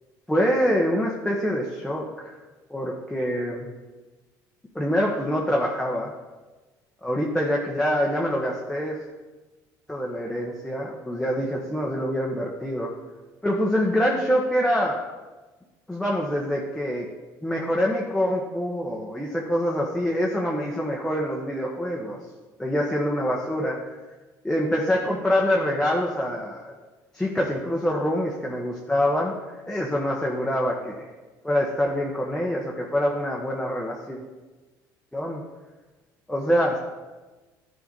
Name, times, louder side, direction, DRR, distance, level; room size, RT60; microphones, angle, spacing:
voice 1, 0.3-2.4 2.7-3.7 4.7-6.1 7.0-9.0 9.9-12.9 13.4-15.0 15.9-17.1 17.4-22.2 22.6-23.8 24.4-26.7 27.1-31.1 31.4-34.2 35.1-35.4 36.3-36.8, equal, 5° left, -3 dB, 1.2 m, -25 dB
11.0 x 5.1 x 4.1 m, 1.2 s
supercardioid pair, 75°, 9 cm